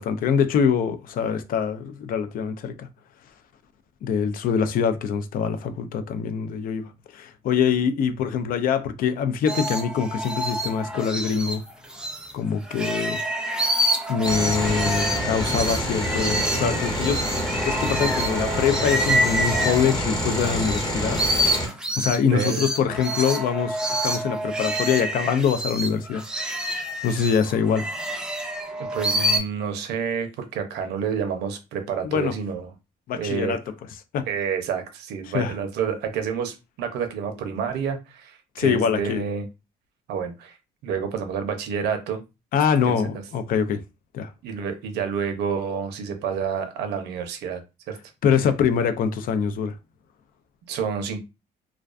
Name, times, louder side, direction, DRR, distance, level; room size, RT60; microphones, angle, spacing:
voice 1, 0.0-2.9 4.0-11.6 12.3-13.2 14.1-17.2 17.7-21.2 22.0-26.2 27.0-27.9 32.0-32.3 33.1-33.6 34.1-34.2 35.3-35.5 38.6-39.2 42.5-43.8 44.1-44.3 48.2-49.7, left 7 dB, 55° left, 0.4 m, -24 dB
sound 1, 9.5-12.3 12.7-20.8 21.1-29.4, right 1 dB, 5° right, 0.4 m, -27 dB
sound 2, 14.2-21.7, equal, 25° left, 0.9 m, -27 dB
voice 2, 22.3-22.6 28.9-32.7 33.1-33.5 34.3-39.5 40.1-40.5 40.8-42.2 42.8-43.1 44.4-47.6 47.9-48.0 50.7-51.2, right 6 dB, 80° right, 0.6 m, -29 dB
2.3 x 2.3 x 2.4 m
cardioid pair, 110°, 17 cm